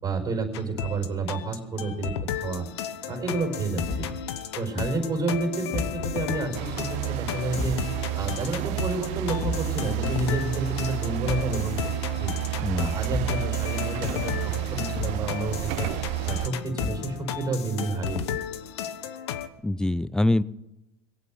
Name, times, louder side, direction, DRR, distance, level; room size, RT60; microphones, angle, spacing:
voice 1, 0.0-2.7 3.1-4.1 4.5-7.8 8.1-11.9 12.2-12.3 12.8-15.9 16.2-18.4, right 3 dB, 25° right, 4 dB, 5.0 m, -30 dB
sound 1, 0.5-19.5, left 9 dB, 85° left, 1.2 m, -34 dB
Thump thud, 3.9-4.2 5.7-6.1 7.5-7.9 9.4-9.7 11.2-11.6 13.1-13.4 14.9-15.3 16.8-17.1, left 3 dB, 50° left, 4.1 m, -32 dB
sound 2, 6.5-16.5, right 23 dB, 55° right, 0.5 m, -31 dB
voice 2, 12.6-13.0 19.6-20.4, left 2 dB, 5° left, 19 dB, 0.5 m, -24 dB
22.0 x 8.5 x 7.7 m, 0.95 s
supercardioid pair, 115°, 14 cm